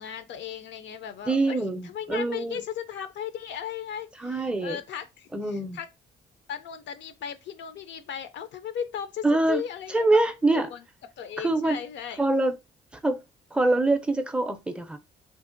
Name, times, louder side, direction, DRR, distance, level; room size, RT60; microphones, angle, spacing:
voice 1, 0.0-5.9 6.5-10.0 10.5-10.8 11.2-12.2, left 8 dB, 65° left, 0.4 m, -36 dB
voice 2, 1.3-2.6 4.2-4.8 5.3-5.8 9.2-9.6 9.9-10.7 11.4-11.8 12.2-12.5 13.0-13.2 13.5-15.0, right 2 dB, 5° right, 0.4 m, -24 dB
2.5 x 2.4 x 2.5 m
cardioid pair, 90°, 20 cm